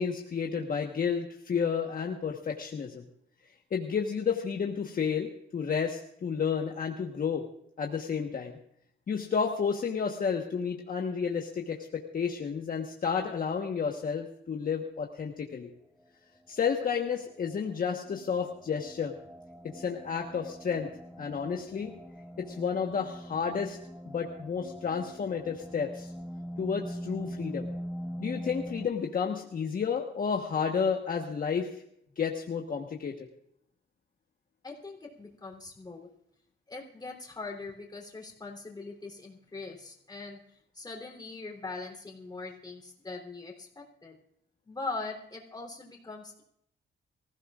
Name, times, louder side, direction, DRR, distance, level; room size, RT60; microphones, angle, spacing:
voice 1, 0.0-3.0 3.7-7.4 7.8-8.6 9.1-15.7 16.5-19.1 19.7-20.9 21.2-21.9 22.4-23.8 24.1-26.1 26.6-27.7 28.2-31.7 32.2-33.1, left 6 dB, 45° left, 2 dB, 1.3 m, -31 dB
sound 1, 16.6-28.9, equal, 5° right, 1.3 m, -42 dB
voice 2, 34.6-36.1 36.7-44.1 44.6-46.4, left 3 dB, 20° left, -1 dB, 3.4 m, -41 dB
25.0 x 15.5 x 2.5 m, 0.72 s
cardioid pair, 120°, 20 cm